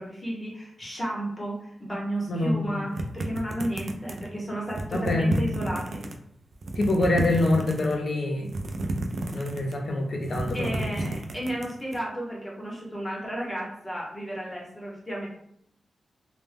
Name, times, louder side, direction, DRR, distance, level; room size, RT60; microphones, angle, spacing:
voice 1, 0.0-6.0 10.5-15.3, right 1 dB, 10° left, -3 dB, 0.8 m, -33 dB
voice 2, 2.3-2.8 4.9-5.3 6.8-8.5 9.3-10.8, left 2 dB, 55° left, 1 dB, 0.5 m, -25 dB
sound 1, 3.0-4.3 4.7-6.1 6.5-8.0 8.5-9.8 10.2-12.0, right 2 dB, 55° right, 0.3 m, -31 dB
2.1 x 2.0 x 3.3 m, 0.72 s
wide cardioid pair, 135°, 0 cm